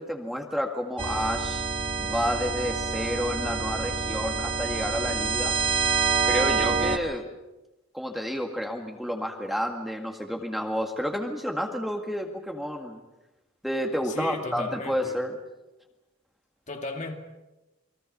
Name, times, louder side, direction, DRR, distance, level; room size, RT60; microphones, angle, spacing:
voice 1, 0.0-1.6 2.0-5.5 6.2-7.2 7.9-13.0 13.6-15.3, equal, ahead, 2 dB, 2.0 m, -30 dB
sound 1, 1.0-7.0, right 5 dB, 30° right, 1.9 m, -27 dB
voice 2, 14.0-15.2 16.7-17.2, left 2 dB, 35° left, 3 dB, 2.4 m, -35 dB
29.0 x 22.5 x 5.5 m, 1.0 s
head